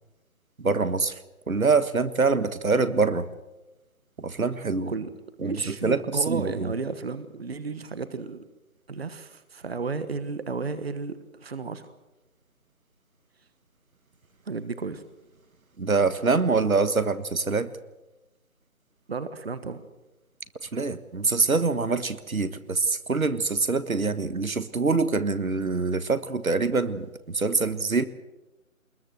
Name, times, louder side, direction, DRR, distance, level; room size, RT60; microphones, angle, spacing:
voice 1, 0.6-1.2 1.5-3.3 4.2-4.9 5.4-6.7 15.8-17.7 20.6-28.1, right 4 dB, 75° right, 12 dB, 1.6 m, -25 dB
voice 2, 5.4-8.5 8.9-11.9 14.4-15.0 19.1-19.8, right 4 dB, 45° right, 12 dB, 1.4 m, -33 dB
21.5 x 21.5 x 7.8 m, 1.0 s
figure-of-eight pair, 160°, 43 cm